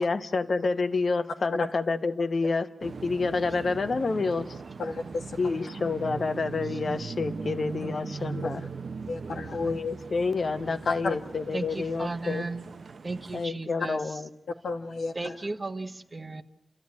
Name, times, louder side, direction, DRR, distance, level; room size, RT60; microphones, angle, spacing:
voice 1, 0.0-4.6 5.4-8.6 9.5-12.4 13.3-14.3, left 4 dB, 50° left, 10 dB, 1.1 m, -28 dB
sound 1, 2.8-13.5, right 5 dB, 60° right, 0.8 m, -39 dB
voice 2, 4.8-5.7 9.1-9.8 10.9-11.1 14.6-15.4, left 3 dB, 90° left, 1 dB, 2.0 m, -33 dB
voice 3, 7.1-8.4 11.5-12.6 13.0-14.2 15.1-16.4, right 2 dB, 30° right, 8 dB, 1.1 m, -37 dB
29.5 x 13.5 x 9.7 m, 0.93 s
wide cardioid pair, 100°, 0 cm